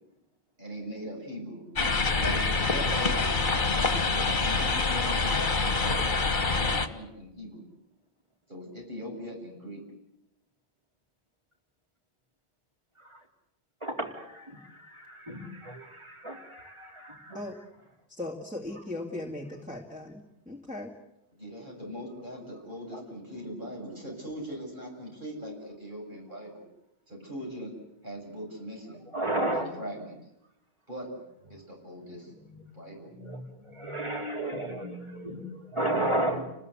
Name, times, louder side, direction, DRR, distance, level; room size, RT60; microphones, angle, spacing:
voice 1, 0.6-1.6 2.2-7.6 8.5-9.8 21.3-26.6 27.1-27.7 28.0-29.0 29.5-30.2 30.9-31.1 31.5-32.3 32.7-33.1, equal, 50° right, 0 dB, 7.7 m, -40 dB
sound 1, 1.8-6.9, left 3 dB, 50° left, 1.6 m, -26 dB
voice 2, 13.8-14.6 15.1-17.4 22.9-23.0 29.1-29.7 32.5-32.7 33.1-33.4 33.7-36.4, right 1 dB, 25° right, 1 dB, 4.0 m, -32 dB
voice 3, 18.2-20.9, left 2 dB, 5° right, 0 dB, 2.2 m, -38 dB
29.5 x 20.0 x 8.3 m, 0.85 s
omnidirectional pair, 1.1 m